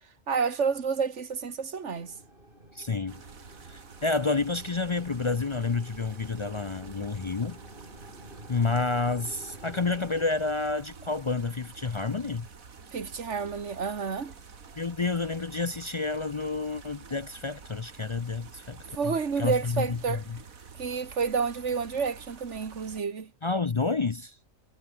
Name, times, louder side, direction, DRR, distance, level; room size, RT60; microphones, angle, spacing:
voice 1, 0.3-2.2 12.9-14.3 18.9-20.2 20.8-23.3, right 5 dB, 60° right, 1.9 m, -29 dB
sound 1, 1.9-10.3, right 1 dB, 40° right, 7.9 m, -50 dB
voice 2, 2.7-3.2 3.7-7.6 8.5-12.5 14.8-18.8 19.0-20.4 23.4-24.4, left 4 dB, 40° left, 0.4 m, -29 dB
sound 2, 3.1-23.0, right 5 dB, 85° right, 2.4 m, -49 dB
omnidirectional pair, 1.4 m